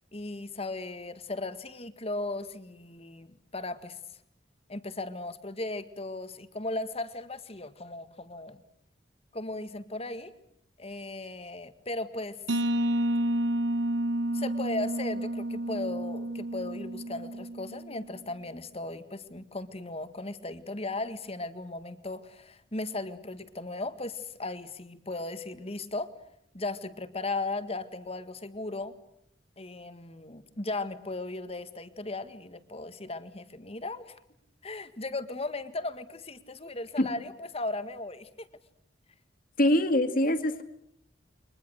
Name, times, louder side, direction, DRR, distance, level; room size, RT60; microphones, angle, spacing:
voice 1, 0.1-4.0 4.7-8.6 9.3-10.3 10.8-12.7 14.3-26.1 26.5-29.0 29.6-34.2 34.6-38.5, left 2 dB, 35° left, 10 dB, 1.9 m, -37 dB
sound 1, 12.5-18.1, right 1 dB, 75° right, 1.3 m, -30 dB
voice 2, 39.6-40.6, left 1 dB, 50° left, 8 dB, 2.3 m, -24 dB
29.5 x 24.0 x 6.5 m, 0.74 s
head